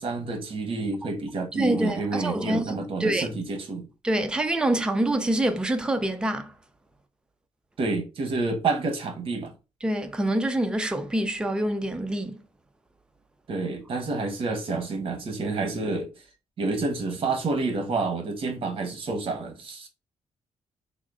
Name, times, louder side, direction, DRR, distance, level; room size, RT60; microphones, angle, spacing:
voice 1, 0.0-3.9 7.8-9.5 13.5-16.1 16.6-19.9, right 3 dB, 50° right, 1.0 m, -29 dB
voice 2, 1.5-3.3 4.0-6.5 9.8-12.4, right 1 dB, 5° right, 0.4 m, -26 dB
3.6 x 2.0 x 3.6 m
cardioid pair, 130°, 12 cm